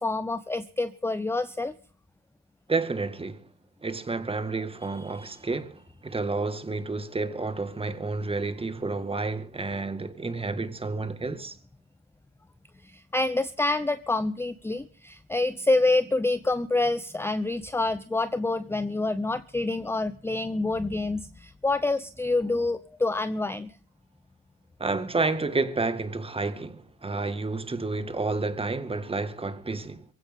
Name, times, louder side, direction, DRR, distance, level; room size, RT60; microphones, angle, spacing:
voice 1, 0.0-1.7 12.8-23.7, left 2 dB, 10° left, 0.8 m, -27 dB
voice 2, 2.7-3.5 3.8-11.6 24.8-30.0, right 3 dB, 15° right, 1.9 m, -30 dB
23.0 x 16.0 x 3.7 m
cardioid pair, 95°, 31 cm